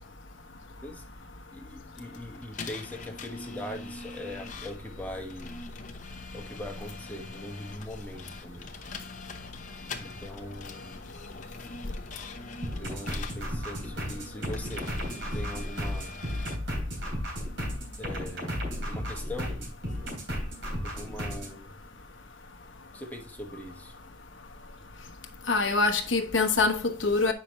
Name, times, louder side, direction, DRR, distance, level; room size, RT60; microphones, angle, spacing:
voice 1, 1.5-5.6 6.3-8.7 10.0-11.2 12.8-16.2 18.0-19.7 20.8-21.7 22.9-24.0, left 1 dB, 10° left, 1.2 m, -41 dB
sound 1, 1.9-13.4 13.8-16.6, left 4 dB, 40° left, 0.8 m, -44 dB
sound 2, 12.6-21.5, equal, 80° right, 3.5 m, -34 dB
voice 2, 25.5-27.3, left 3 dB, 80° left, 1.0 m, -24 dB
8.5 x 5.8 x 3.0 m
head